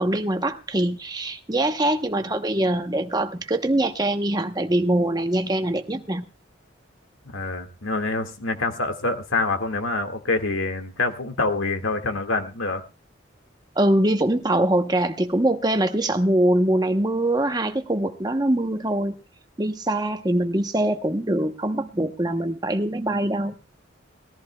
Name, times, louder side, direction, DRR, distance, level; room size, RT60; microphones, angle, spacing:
voice 1, 0.0-6.2 13.8-19.2 19.6-23.6, right 1 dB, 20° right, 0.9 m, -23 dB
voice 2, 7.2-12.8, left 3 dB, 85° left, 1.9 m, -26 dB
20.5 x 14.5 x 2.3 m
head